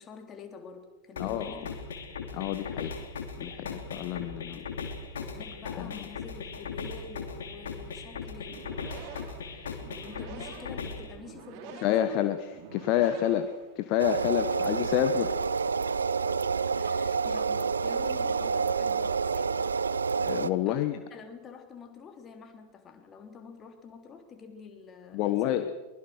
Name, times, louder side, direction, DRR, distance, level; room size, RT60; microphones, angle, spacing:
voice 1, 0.0-1.9 4.4-4.8 5.2-12.3 13.3-13.4 16.8-19.7 20.7-25.7, left 5 dB, 25° left, 5 dB, 3.4 m, -47 dB
sound 1, 1.2-11.2, left 5 dB, 65° left, 2.9 m, -39 dB
voice 2, 1.2-1.6 2.3-2.9 3.4-4.6 5.8-6.1 11.8-13.5 13.8-15.4 20.2-21.0 25.1-25.7, left 12 dB, 40° left, 9 dB, 1.3 m, -28 dB
sound 2, 8.4-14.1, right 8 dB, 45° right, 2.9 m, -48 dB
sound 3, 14.0-20.5, right 5 dB, 75° right, 0.6 m, -28 dB
23.5 x 21.5 x 6.4 m, 1.2 s
figure-of-eight pair, 90°, 0 cm